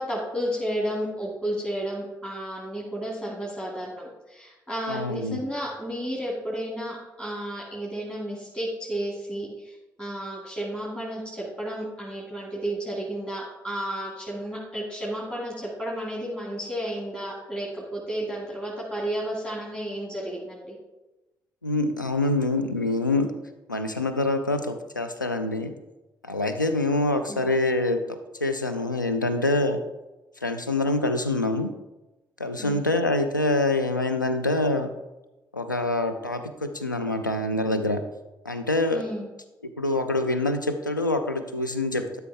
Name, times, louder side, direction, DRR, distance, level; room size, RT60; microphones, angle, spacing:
voice 1, 0.0-9.7 10.0-20.7 27.3-27.5 32.6-32.9 38.9-39.3, right 1 dB, 10° left, -4 dB, 2.3 m, -32 dB
voice 2, 4.9-5.4 21.6-23.3 23.7-25.7 26.2-29.8 30.4-31.7 32.4-34.9 35.5-38.0 38.5-39.0 39.8-42.2, left 2 dB, 90° left, 9 dB, 0.4 m, -25 dB
12.0 x 5.5 x 3.5 m, 1.0 s
figure-of-eight pair, 40°, 10 cm